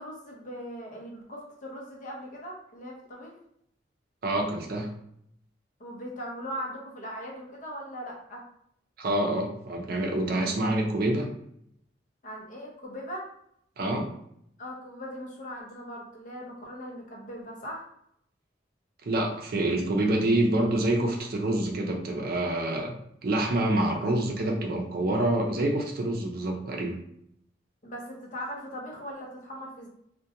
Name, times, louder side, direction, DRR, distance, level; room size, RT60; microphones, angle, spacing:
voice 1, 0.0-3.3 5.8-8.4 12.2-13.3 14.6-17.9 27.8-29.9, equal, 45° left, -1 dB, 0.6 m, -39 dB
voice 2, 4.2-4.9 9.0-11.3 13.8-14.1 19.1-22.9 23.2-27.0, right 1 dB, 55° right, 1 dB, 0.5 m, -27 dB
2.4 x 2.2 x 2.7 m, 0.72 s
head